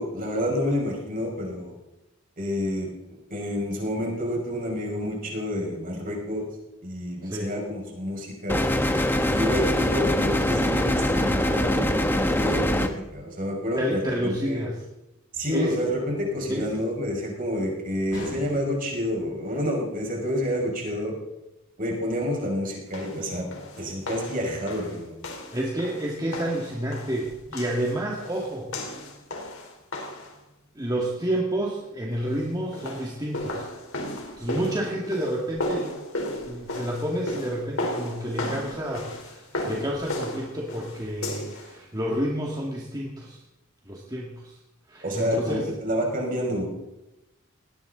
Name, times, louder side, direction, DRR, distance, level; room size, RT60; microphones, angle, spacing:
voice 1, 0.0-1.7 2.4-2.9 3.3-6.5 6.8-8.6 9.3-14.7 15.3-21.2 21.8-23.4 23.8-25.2 45.0-46.6, equal, 40° right, -1 dB, 5.6 m, -29 dB
sound 1, 8.5-12.9, left 1 dB, 10° left, 1.2 m, -23 dB
voice 2, 13.8-14.8 15.5-15.7 16.5-16.7 25.5-28.7 30.8-33.7 34.4-35.9 36.4-43.4 43.9-44.6 44.9-45.7, right 1 dB, 20° right, -3 dB, 2.0 m, -29 dB
sound 2, 14.1-14.6 18.1-18.9, left 1 dB, 60° left, 6.6 m, -41 dB
sound 3, 22.9-30.4 32.6-41.7, left 1 dB, 85° left, 3.9 m, -35 dB
19.5 x 18.0 x 4.0 m, 0.97 s
head